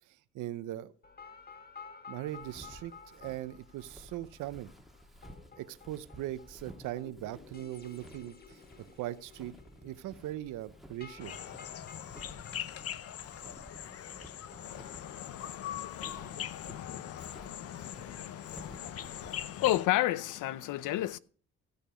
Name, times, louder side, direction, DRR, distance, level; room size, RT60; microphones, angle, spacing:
voice 1, 0.3-0.9 2.1-4.7 5.6-9.5 9.8-11.4, right 14 dB, 90° right, 0.8 m, -40 dB
sound 1, 1.0-19.5, left 5 dB, 30° left, 1.6 m, -54 dB
Walk footsteps, 2.3-19.6, equal, ahead, 1.5 m, -54 dB
sound 2, 11.2-19.9, left 10 dB, 50° left, 0.7 m, -42 dB
voice 2, 14.6-21.2, left 14 dB, 90° left, 0.6 m, -34 dB
15.0 x 6.7 x 5.0 m
cardioid pair, 90°, 30 cm